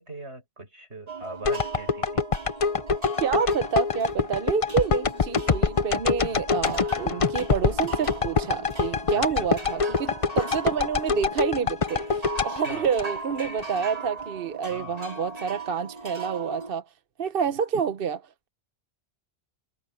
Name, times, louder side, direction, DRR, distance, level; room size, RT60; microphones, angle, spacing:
voice 1, 0.0-2.3 6.2-6.4 9.1-9.5 12.4-12.9 14.7-15.0, right 2 dB, 80° right, 6.9 m, -41 dB
sound 1, 1.1-16.7, right 3 dB, 35° right, 2.6 m, -39 dB
sound 2, 1.4-13.6 14.1-14.2, left 5 dB, 35° left, 0.7 m, -25 dB
voice 2, 3.2-16.8 17.2-18.2, right 7 dB, 60° right, 1.0 m, -28 dB
omnidirectional pair, 1.1 m